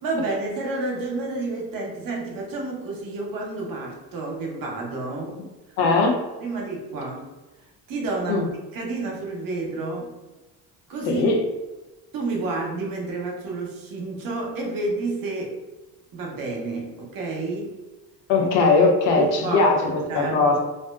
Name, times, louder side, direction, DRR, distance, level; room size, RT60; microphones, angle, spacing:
voice 1, 0.0-5.3 6.4-7.3 7.9-10.1 10.9-11.3 12.1-15.5 16.1-17.7 19.1-20.5, right 3 dB, 50° right, -1 dB, 0.8 m, -30 dB
voice 2, 5.8-6.2 8.3-8.5 11.1-11.4 18.3-20.6, left 3 dB, 80° left, 0 dB, 0.7 m, -19 dB
2.5 x 2.1 x 2.3 m, 1.1 s
supercardioid pair, 85°, 43 cm